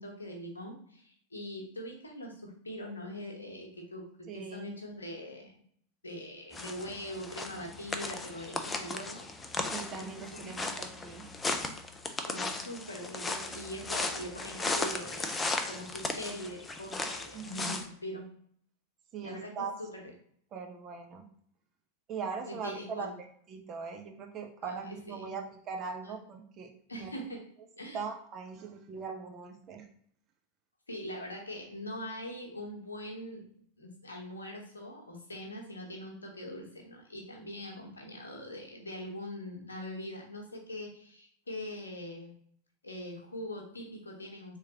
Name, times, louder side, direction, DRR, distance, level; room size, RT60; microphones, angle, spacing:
voice 1, 0.0-4.0 4.3-5.5 6.0-9.2 10.0-10.5 12.2-18.2 19.2-20.0 22.5-23.1 24.6-25.4 26.0-26.1 26.9-27.5 27.8-28.0 30.9-33.5 33.8-42.3 42.8-44.6, left 1 dB, 75° left, 0 dB, 0.9 m, -42 dB
voice 2, 4.3-4.8 9.7-11.3 13.5-13.6 17.3-17.8 19.1-19.8 20.5-21.3 22.1-27.1 27.9-29.9, right 5 dB, 30° right, 3 dB, 0.6 m, -41 dB
sound 1, 6.5-17.8, left 3 dB, 15° left, 0.4 m, -36 dB
3.6 x 3.1 x 2.7 m, 0.63 s
figure-of-eight pair, 90°, 0 cm